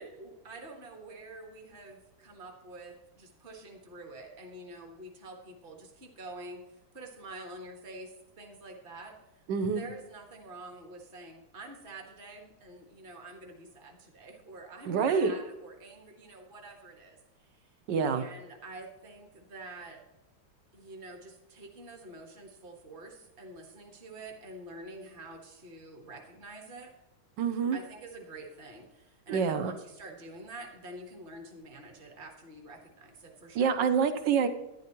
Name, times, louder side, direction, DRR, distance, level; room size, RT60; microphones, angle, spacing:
voice 1, 0.0-9.1 9.6-17.7 18.0-20.0 20.7-26.9 27.7-33.8, right 2 dB, 30° right, 2 dB, 1.6 m, -47 dB
voice 2, 9.5-9.8 14.9-15.3 17.9-18.2 27.4-27.8 29.3-29.7 33.5-34.5, right 6 dB, 75° right, 9 dB, 1.5 m, -26 dB
12.0 x 10.5 x 3.0 m, 0.96 s
omnidirectional pair, 2.0 m